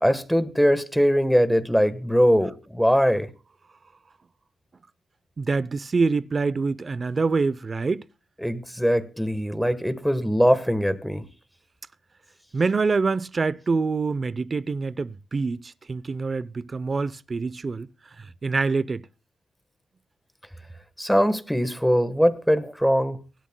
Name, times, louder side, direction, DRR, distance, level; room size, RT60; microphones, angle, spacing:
voice 1, 0.0-3.3 8.4-11.2 21.0-23.2, equal, ahead, 1.2 m, -21 dB
voice 2, 5.4-8.0 12.5-17.9 18.2-19.0, right 4 dB, 30° right, 0.5 m, -25 dB
23.5 x 12.5 x 2.2 m
cardioid pair, 120°, 0 cm